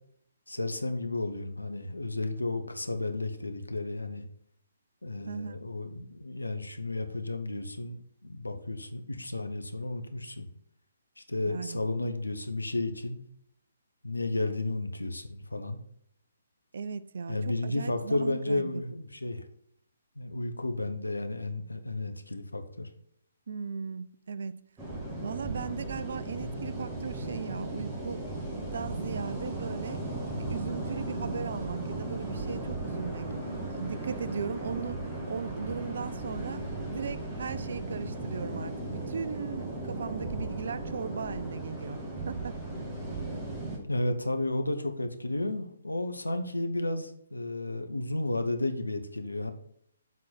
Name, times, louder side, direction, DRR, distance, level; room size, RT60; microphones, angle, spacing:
voice 1, 0.5-4.2 5.0-10.5 11.2-13.2 14.0-15.8 17.3-19.5 20.2-22.9 43.9-49.5, left 2 dB, 80° left, 1.0 m, -32 dB
voice 2, 5.3-5.6 11.4-11.8 16.7-18.8 23.5-24.7 25.2-28.2 28.7-30.0 30.4-33.3 33.7-42.0 42.3-42.6, right 6 dB, 55° right, 0.4 m, -37 dB
sound 1, 24.8-43.8, right 2 dB, 15° right, 1.8 m, -36 dB
7.4 x 4.0 x 5.8 m
figure-of-eight pair, 135°, 0 cm